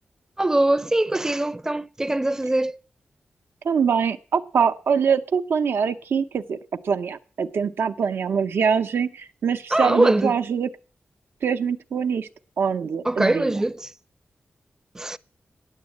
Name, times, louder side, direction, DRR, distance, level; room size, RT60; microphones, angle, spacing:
voice 1, 0.4-2.8 9.7-10.4 13.0-13.9 14.9-15.2, right 1 dB, 15° right, 0.5 m, -22 dB
voice 2, 3.6-6.6 6.8-10.7 11.4-12.3 12.6-13.6, right 6 dB, 85° right, 0.8 m, -24 dB
9.7 x 8.3 x 8.4 m
wide cardioid pair, 90°, 4 cm